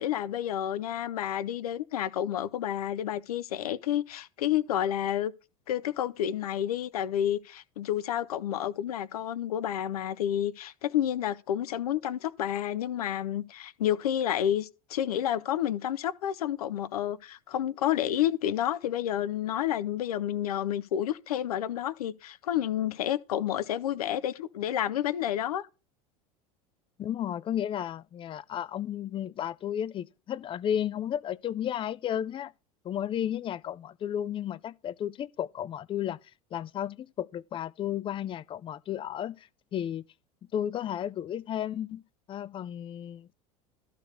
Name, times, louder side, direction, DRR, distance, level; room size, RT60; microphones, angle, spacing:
voice 1, 0.0-5.3 5.7-25.7, left 11 dB, 85° left, 0.5 m, -30 dB
voice 2, 27.0-32.5 32.8-36.2 36.5-40.1 40.5-42.0 42.3-43.3, left 10 dB, 25° left, 0.4 m, -33 dB
13.0 x 4.5 x 4.9 m
hypercardioid pair, 85°, 19 cm